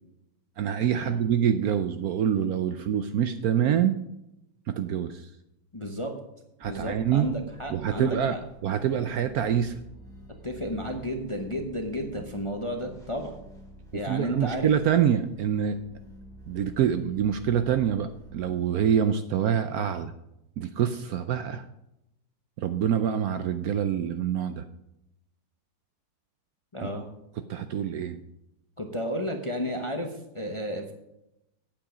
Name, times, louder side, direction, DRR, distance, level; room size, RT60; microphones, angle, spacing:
voice 1, 0.6-4.0 4.7-5.3 6.6-7.3 7.7-8.4 8.6-9.8 13.9-15.8 16.5-20.1 20.6-21.6 22.6-24.6 26.8-26.9 27.5-28.2, right 9 dB, 70° right, 10 dB, 0.9 m, -26 dB
voice 2, 5.7-6.1 6.7-8.4 10.4-13.4 13.9-14.7 26.7-27.1 28.8-30.9, equal, 25° left, 4 dB, 0.7 m, -32 dB
sound 1, 6.6-18.5, right 1 dB, ahead, 3.7 m, -49 dB
9.0 x 8.5 x 5.0 m, 0.86 s
omnidirectional pair, 1.9 m